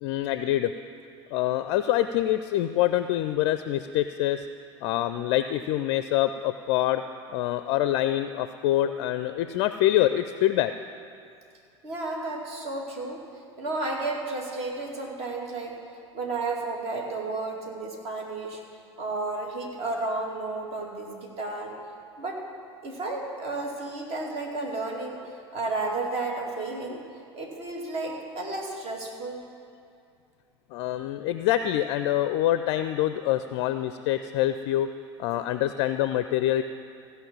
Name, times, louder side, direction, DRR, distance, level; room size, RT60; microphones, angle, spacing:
voice 1, 0.0-0.7 1.3-4.5 4.8-7.0 7.3-10.7 30.7-34.9 35.2-36.6, left 13 dB, 50° left, 11 dB, 0.4 m, -25 dB
voice 2, 11.8-13.2 13.6-15.7 16.1-18.6 19.0-21.7 22.2-22.4 22.8-25.2 25.5-27.0 27.3-29.4, right 2 dB, 45° right, -1 dB, 2.5 m, -32 dB
15.5 x 5.5 x 7.3 m, 2.5 s
figure-of-eight pair, 75°, 15 cm